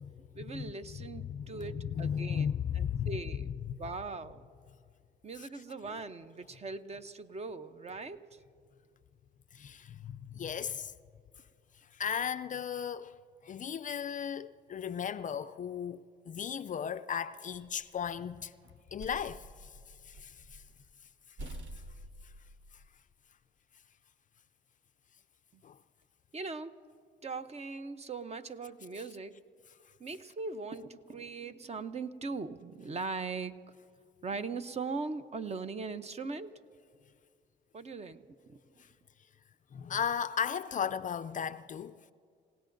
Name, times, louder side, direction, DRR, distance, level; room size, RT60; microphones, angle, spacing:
voice 1, 0.4-3.5 3.8-4.4 5.2-8.4 25.5-25.6 26.3-26.8 27.2-29.4 30.0-33.5 34.2-36.5 37.7-38.6, right 4 dB, 35° right, 0.7 m, -40 dB
voice 2, 1.3-3.1 5.4-5.5 9.5-10.9 11.9-13.1 13.4-18.5 18.9-19.7 20.0-20.6 21.4-21.5 25.6-25.8 39.7-42.0, left 8 dB, 40° left, 0.4 m, -36 dB
sound 1, 17.6-18.1 18.6-20.8 21.0-21.1 21.4-22.9, right 1 dB, 70° right, 1.1 m, -48 dB
28.5 x 17.0 x 2.6 m
cardioid pair, 90°, 20 cm